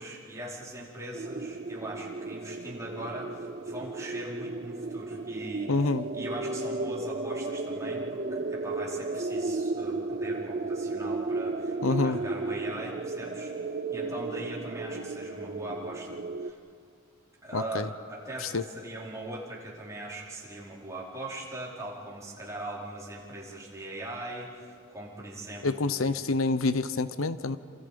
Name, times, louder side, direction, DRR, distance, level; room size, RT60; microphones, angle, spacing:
voice 1, 0.0-5.7 6.1-16.6 17.4-26.2, right 1 dB, 15° right, -5 dB, 4.6 m, -40 dB
sound 1, 1.1-16.5, right 3 dB, 40° right, 0.7 m, -34 dB
voice 2, 5.7-6.1 11.8-12.2 17.5-17.9 18.4-18.6 25.6-27.6, left 3 dB, 80° left, 13 dB, 0.8 m, -27 dB
29.5 x 27.5 x 5.2 m, 2.3 s
head